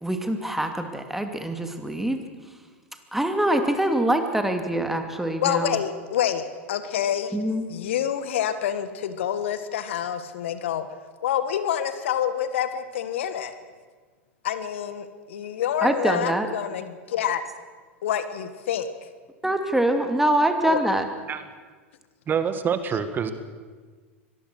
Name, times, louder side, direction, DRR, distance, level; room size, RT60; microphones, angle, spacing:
voice 1, 0.0-2.2 3.1-5.8 7.3-7.7 15.8-16.5 19.4-21.1, right 1 dB, 5° right, 6 dB, 2.7 m, -24 dB
voice 2, 5.4-7.3 7.7-10.9 11.2-13.5 14.4-17.4 18.0-18.9 20.6-20.8, left 9 dB, 70° left, 11 dB, 1.6 m, -27 dB
voice 3, 22.3-23.3, right 7 dB, 30° right, 10 dB, 1.8 m, -26 dB
24.0 x 19.0 x 6.5 m, 1.4 s
hypercardioid pair, 90°, 7 cm